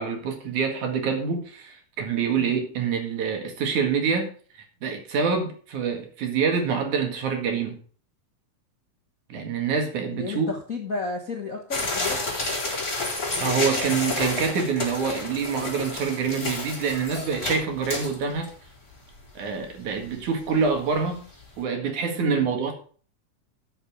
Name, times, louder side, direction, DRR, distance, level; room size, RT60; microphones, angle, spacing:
voice 1, 0.0-4.3 4.8-7.8 9.3-10.5 13.4-18.5 19.4-21.3 21.6-22.7, right 6 dB, 70° right, 4 dB, 3.4 m, -26 dB
voice 2, 10.1-12.2 22.2-22.6, left 3 dB, 45° left, 1 dB, 1.0 m, -32 dB
sound 1, 11.7-18.5 19.0-19.1 19.3-19.4 19.9-20.2 20.6-20.7 21.0-21.1, left 2 dB, 25° left, 4.4 m, -30 dB
13.0 x 7.0 x 4.9 m, 0.42 s
omnidirectional pair, 3.5 m